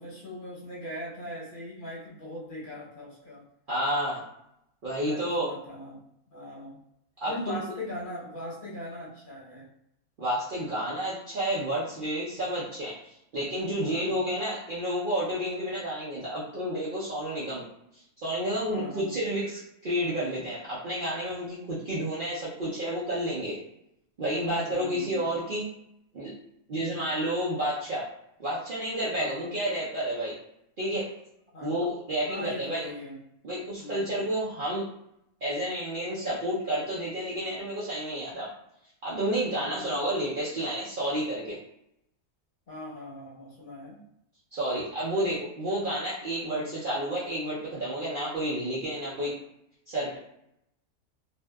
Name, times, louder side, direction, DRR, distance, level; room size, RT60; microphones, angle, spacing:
voice 1, 0.0-3.4 5.0-6.0 6.3-6.8 7.3-9.7 13.8-14.2 18.7-19.2 24.4-25.2 26.8-27.2 29.1-29.5 31.5-31.7 32.3-33.2 33.8-34.2 39.6-40.2 42.7-44.0 46.4-46.7, left 1 dB, 45° left, -6 dB, 0.8 m, -40 dB
voice 2, 3.7-4.2 4.8-5.5 7.2-7.6 10.2-17.6 18.2-23.6 24.2-25.7 26.1-26.3 26.7-28.1 28.4-30.4 30.8-31.1 31.6-32.8 33.4-34.8 35.4-38.5 39.0-41.6 44.5-49.3 49.9-50.2, right 1 dB, 55° right, -8 dB, 0.6 m, -30 dB
2.6 x 2.3 x 2.2 m, 0.79 s
omnidirectional pair, 1.5 m